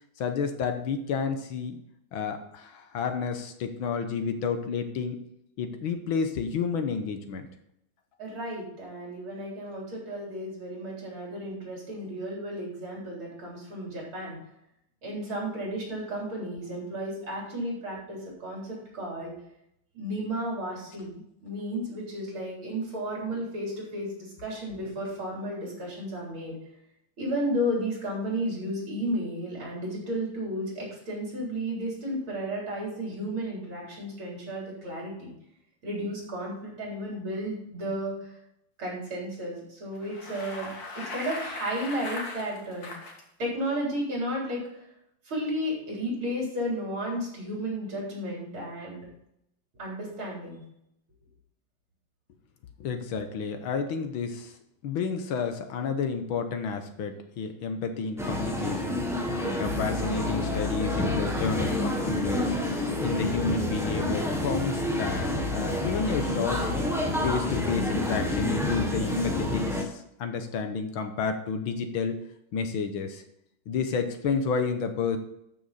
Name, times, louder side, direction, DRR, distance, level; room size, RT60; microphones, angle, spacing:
voice 1, 0.2-1.8 2.1-5.2 5.6-7.5 52.8-54.5 54.8-59.0 59.6-62.6 63.0-66.6 67.2-72.2 72.5-73.2 73.7-75.2, left 5 dB, 70° left, 7 dB, 1.8 m, -30 dB
voice 2, 8.2-14.4 15.0-19.3 19.9-26.5 27.2-35.3 35.8-38.3 38.8-43.0 43.4-44.8 45.3-49.1 49.8-50.6, equal, 70° right, -3 dB, 4.5 m, -33 dB
Bicycle, 39.9-43.2, left 2 dB, 45° left, 2.3 m, -39 dB
sound 1, 58.2-69.8, left 1 dB, ahead, 1.0 m, -28 dB
12.5 x 6.3 x 4.2 m, 0.78 s
omnidirectional pair, 2.4 m